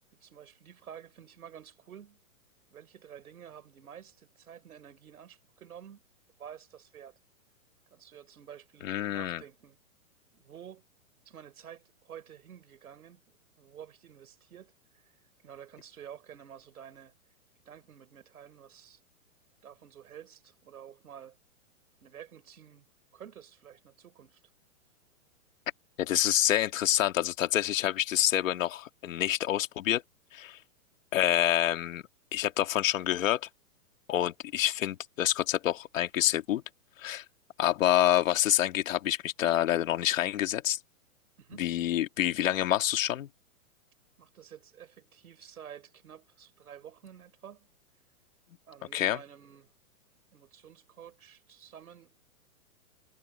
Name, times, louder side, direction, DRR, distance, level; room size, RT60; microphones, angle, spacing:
voice 1, 0.2-2.2 2.7-6.0 6.4-7.2 7.9-9.8 10.3-10.8 11.2-13.2 13.6-15.0 15.4-17.1 17.6-19.0 19.6-21.4 22.0-24.4 41.4-41.7 44.2-47.7 48.7-49.7 50.3-52.2, right 9 dB, 85° right, 5.2 m, -50 dB
voice 2, 8.8-9.4 26.0-30.0 30.3-30.6 31.1-32.0 32.3-33.5 34.1-36.6 37.0-37.2 37.6-40.8 41.6-43.3 48.9-49.2, left 12 dB, 65° left, 2.5 m, -27 dB
hypercardioid pair, 150°, 43 cm